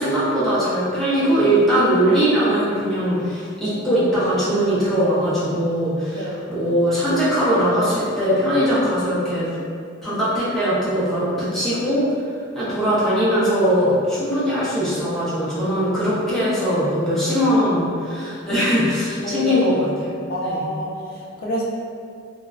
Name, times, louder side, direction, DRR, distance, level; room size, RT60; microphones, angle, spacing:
voice 1, 0.0-9.5 10.0-12.1 12.5-19.9 20.4-20.6, equal, ahead, -11 dB, 0.6 m, -20 dB
voice 2, 6.1-6.5 19.2-19.8 20.3-21.6, equal, 45° left, -4 dB, 0.4 m, -27 dB
2.5 x 2.1 x 2.3 m, 2.3 s
head